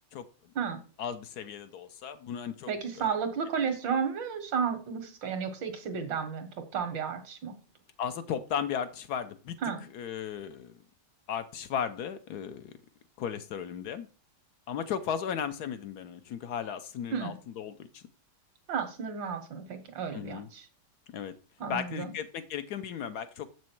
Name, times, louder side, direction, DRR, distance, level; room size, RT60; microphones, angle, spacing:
voice 1, 1.0-2.7 3.0-3.1 8.0-9.6 9.9-10.7 11.3-12.8 13.2-14.1 14.7-18.0 20.1-20.5 21.1-21.3 21.7-23.5, left 8 dB, 70° left, 10 dB, 1.1 m, -35 dB
voice 2, 2.7-6.5 6.7-7.6 9.6-9.8 17.1-17.3 18.7-20.7 21.6-22.1, right 6 dB, 85° right, 8 dB, 1.9 m, -32 dB
7.3 x 6.2 x 4.4 m, 0.37 s
omnidirectional pair, 1.9 m